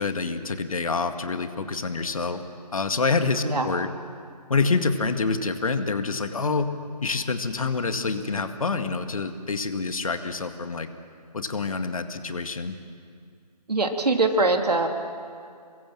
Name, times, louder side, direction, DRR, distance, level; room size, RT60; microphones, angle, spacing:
voice 1, 0.0-2.4 2.7-3.9 4.5-6.7 7.0-10.9 11.3-12.8, left 4 dB, 55° left, 8 dB, 2.0 m, -27 dB
voice 2, 13.7-14.9, right 2 dB, 70° right, 4 dB, 3.2 m, -22 dB
28.0 x 23.5 x 7.6 m, 2.3 s
figure-of-eight pair, 155°, 21 cm